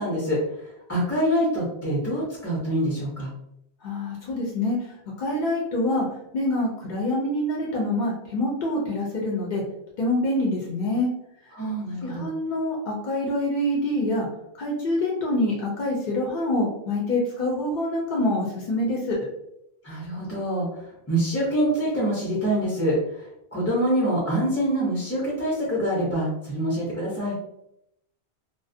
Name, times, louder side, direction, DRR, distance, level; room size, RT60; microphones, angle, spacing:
voice 1, 0.0-3.3 11.5-12.3 19.8-27.3, right 1 dB, 20° left, -6 dB, 0.5 m, -25 dB
voice 2, 3.8-6.1 6.3-9.6 10.0-11.1 12.0-14.3 14.6-19.2, left 1 dB, 60° left, -2 dB, 0.6 m, -26 dB
2.4 x 2.0 x 2.6 m, 0.81 s
omnidirectional pair, 1.1 m